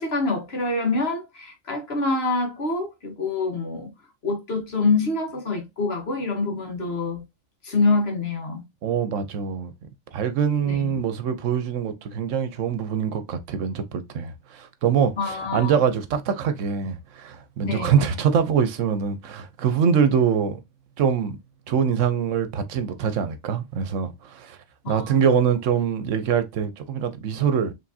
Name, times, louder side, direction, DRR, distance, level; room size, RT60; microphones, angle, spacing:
voice 1, 0.0-3.9 4.2-7.2 7.6-8.6 10.6-10.9 15.2-15.8 17.6-18.0 24.8-25.2, left 3 dB, 55° left, 1.4 m, -26 dB
voice 2, 8.8-9.7 10.1-20.6 21.0-21.4 21.7-24.6 24.9-27.7, right 7 dB, 75° right, 1.0 m, -24 dB
4.9 x 3.3 x 2.7 m
omnidirectional pair, 1.3 m